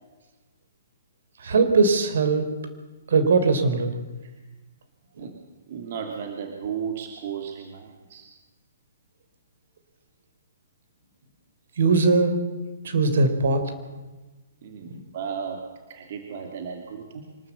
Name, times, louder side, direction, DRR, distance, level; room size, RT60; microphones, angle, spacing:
voice 1, 1.4-2.5 3.1-3.9 11.8-12.5 12.8-13.7 14.9-15.0, right 3 dB, 70° right, 9 dB, 3.8 m, -20 dB
voice 2, 5.7-8.3 14.6-17.3, right 7 dB, 50° right, 3 dB, 2.7 m, -35 dB
24.5 x 13.0 x 8.4 m, 1.2 s
hypercardioid pair, 155°, 0 cm